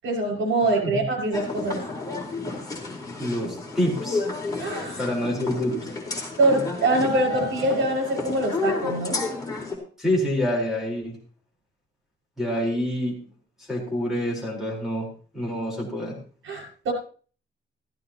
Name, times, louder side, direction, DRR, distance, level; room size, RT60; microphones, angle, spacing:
voice 1, 0.0-1.8 4.6-5.0 6.4-9.2 16.4-16.9, right 2 dB, 85° right, 2 dB, 5.9 m, -24 dB
sound 1, 1.3-9.8, left 3 dB, 20° left, 4.4 m, -31 dB
voice 2, 3.2-4.2 5.0-5.8 10.0-11.2 12.4-13.1 13.7-15.1 15.3-16.1, equal, ahead, -2 dB, 4.1 m, -26 dB
15.0 x 15.0 x 2.9 m, 0.41 s
wide cardioid pair, 165°, 20 cm